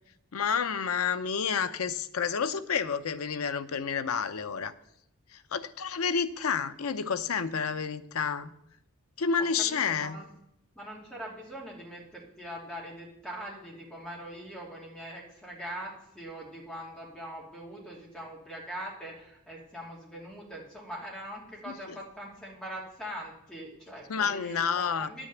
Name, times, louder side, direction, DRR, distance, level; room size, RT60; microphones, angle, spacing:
voice 1, 0.3-4.7 5.3-8.5 9.2-10.2 21.7-22.0 24.1-25.1, left 6 dB, 90° left, 11 dB, 0.6 m, -30 dB
voice 2, 9.4-10.3 10.7-25.3, equal, 5° left, -3 dB, 2.8 m, -42 dB
10.0 x 6.2 x 8.1 m, 0.79 s
head